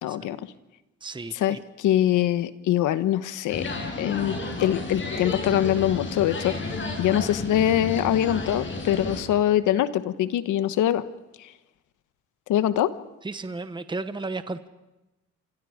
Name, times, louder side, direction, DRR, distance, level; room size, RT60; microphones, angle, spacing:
voice 1, 0.0-0.4 1.3-3.6 4.0-11.0 11.4-11.5 12.5-12.9, left 11 dB, 85° left, 12 dB, 1.2 m, -24 dB
voice 2, 1.0-1.6 13.2-14.7, right 3 dB, 15° right, 11 dB, 1.1 m, -34 dB
sound 1, 3.5-9.2, left 3 dB, 40° left, 7.0 m, -32 dB
29.5 x 26.0 x 5.1 m, 1.0 s
cardioid pair, 90°, 30 cm